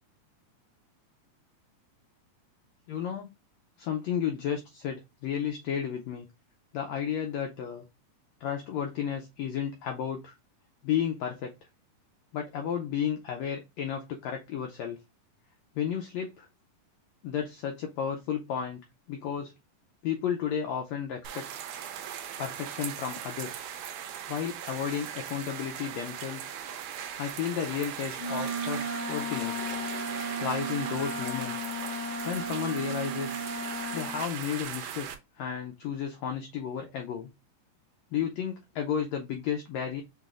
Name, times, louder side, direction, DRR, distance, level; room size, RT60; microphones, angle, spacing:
voice 1, 2.9-3.3 3.8-6.3 6.7-7.8 8.4-10.3 10.8-11.5 12.3-15.0 15.8-16.5 17.2-18.8 19.1-19.5 20.0-21.5 22.4-23.7 24.3-26.4 27.2-29.7 30.4-31.7 32.2-33.5 33.9-35.1 35.4-37.3 38.1-40.0, left 8 dB, 85° left, 3 dB, 1.5 m, -33 dB
sound 1, 21.2-35.1, right 9 dB, 80° right, 2.0 m, -38 dB
Wind instrument woodwind instrument, 28.2-34.2, equal, 35° left, 2.2 m, -35 dB
5.7 x 3.2 x 2.4 m, 0.24 s
omnidirectional pair, 3.8 m